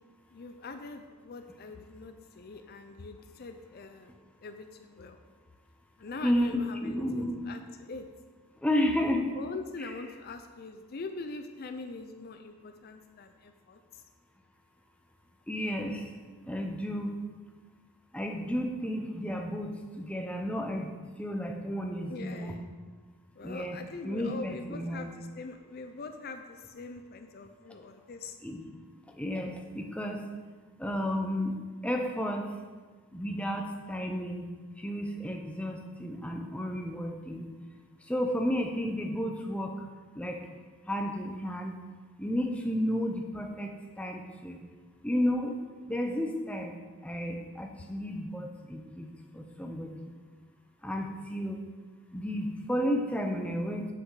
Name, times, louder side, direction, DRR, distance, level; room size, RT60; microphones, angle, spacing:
voice 1, 0.3-4.1 4.4-5.2 6.0-8.1 9.4-14.0 22.1-22.6 23.4-28.4, left 3 dB, 45° left, 7 dB, 0.5 m, -43 dB
voice 2, 6.2-7.5 8.6-9.3 15.5-16.1 16.4-17.2 18.1-20.9 21.2-22.5 23.4-23.8 24.0-25.1 28.4-28.7 29.1-30.3 30.8-31.6 31.8-32.5 33.1-34.5 34.8-37.5 38.0-39.9 40.1-40.4 40.9-41.7 42.2-44.6 45.0-46.7 47.0-49.1 49.3-50.2 50.8-51.6 52.1-53.9, equal, 5° left, 2 dB, 0.7 m, -32 dB
7.9 x 6.1 x 4.8 m, 1.4 s
head